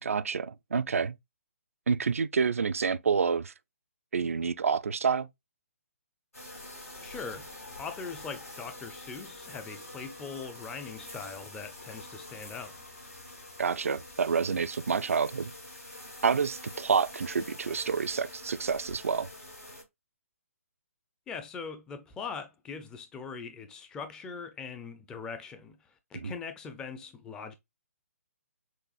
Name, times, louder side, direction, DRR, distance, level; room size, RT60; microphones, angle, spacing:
voice 1, 0.0-1.1 1.9-3.5 4.1-5.3 13.6-15.5 16.2-19.3 26.2-26.3, right 6 dB, 65° right, 0.4 m, -28 dB
sound 1, 6.3-19.8, left 1 dB, 85° left, 2.4 m, -46 dB
sound 2, 6.5-13.9, left 6 dB, 50° left, 0.7 m, -55 dB
voice 2, 7.0-7.5 7.8-12.8 21.3-27.5, left 5 dB, 10° left, 0.4 m, -41 dB
6.2 x 2.4 x 2.4 m
figure-of-eight pair, 135°, 8 cm